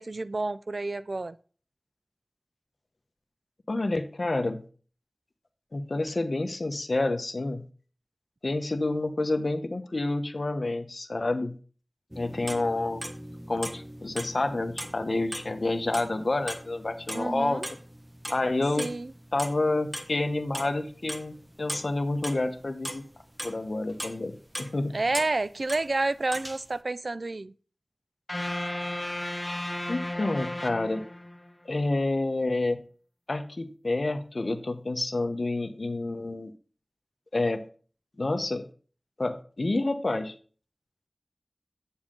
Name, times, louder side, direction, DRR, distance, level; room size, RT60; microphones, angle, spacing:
voice 1, 0.0-1.4 17.1-17.7 18.8-19.1 24.9-27.5, right 2 dB, 70° right, 0.4 m, -29 dB
voice 2, 3.7-4.6 5.7-7.6 8.4-11.6 12.1-13.0 13.5-17.6 18.3-18.9 19.3-23.0 23.4-24.9 29.4-31.0 31.6-32.8 33.3-36.5 37.3-37.6 38.2-38.7 39.2-40.3, left 2 dB, 70° left, 1.0 m, -29 dB
sound 1, 12.1-25.9 26.2-26.8, equal, 15° right, 1.2 m, -40 dB
sound 2, 28.3-31.5, left 1 dB, 30° left, 1.1 m, -34 dB
8.7 x 7.2 x 3.8 m
wide cardioid pair, 45°, 0 cm